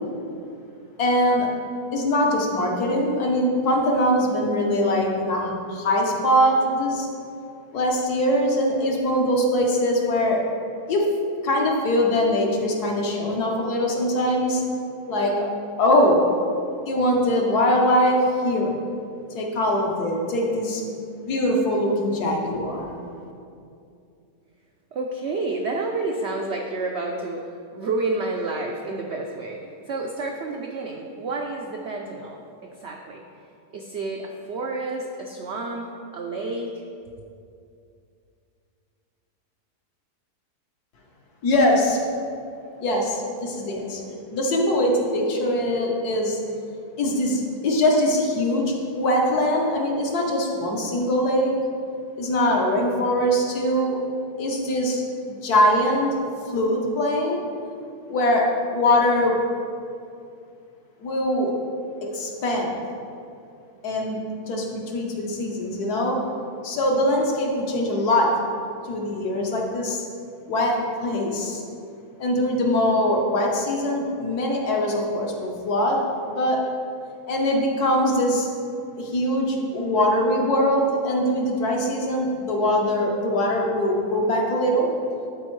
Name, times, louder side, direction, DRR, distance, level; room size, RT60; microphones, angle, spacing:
voice 1, 1.0-1.5 1.9-7.1 7.7-10.4 10.9-11.1 11.4-14.6 15.1-15.5 15.8-16.2 16.9-18.8 19.3-20.8 21.1-22.9 41.4-42.0 42.8-46.4 47.0-51.5 52.2-54.0 54.4-55.0 55.4-56.2 56.5-57.4 58.1-58.5 58.7-59.4 61.0-61.5 62.1-62.7 63.8-66.2 66.6-68.3 68.9-70.0 70.5-71.6 72.2-76.6 77.3-78.5 79.0-84.9, left 1 dB, 70° left, 0 dB, 1.5 m, -22 dB
voice 2, 24.9-29.6 29.9-33.2 33.7-35.9 36.1-36.8, right 3 dB, 80° right, 1 dB, 0.6 m, -30 dB
11.5 x 4.3 x 3.1 m, 2.5 s
omnidirectional pair, 1.7 m